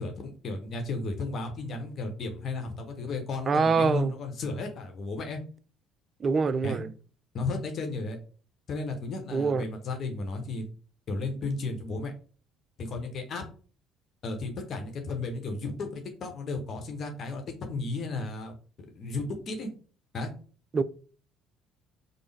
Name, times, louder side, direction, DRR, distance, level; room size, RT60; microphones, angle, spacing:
voice 1, 0.0-5.4 6.6-6.8 7.3-8.2 8.7-10.7 11.1-12.1 12.8-13.5 14.2-18.5 18.9-19.7 20.1-20.3, left 3 dB, 45° left, 0.9 m, -34 dB
voice 2, 3.5-4.1 6.2-6.9 9.3-9.6 20.7-20.8, right 4 dB, 35° right, 0.3 m, -24 dB
5.2 x 2.0 x 3.3 m
figure-of-eight pair, 55°, 0 cm